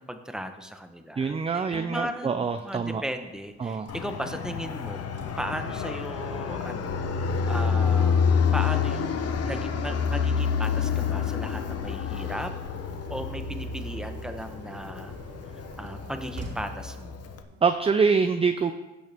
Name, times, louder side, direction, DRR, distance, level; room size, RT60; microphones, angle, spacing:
voice 1, 0.0-5.0 5.4-12.5 13.1-15.2 15.5-17.2, equal, ahead, 7 dB, 0.9 m, -37 dB
voice 2, 1.2-3.0 3.6-3.9 17.6-18.7, right 5 dB, 20° right, 8 dB, 0.4 m, -25 dB
sound 1, 2.5-17.7, right 2 dB, 55° right, 2.6 m, -46 dB
Fixed-wing aircraft airplane, 3.9-17.4, left 6 dB, 55° left, 0.9 m, -28 dB
16.0 x 6.3 x 3.5 m, 1.1 s
cardioid pair, 90°, 30 cm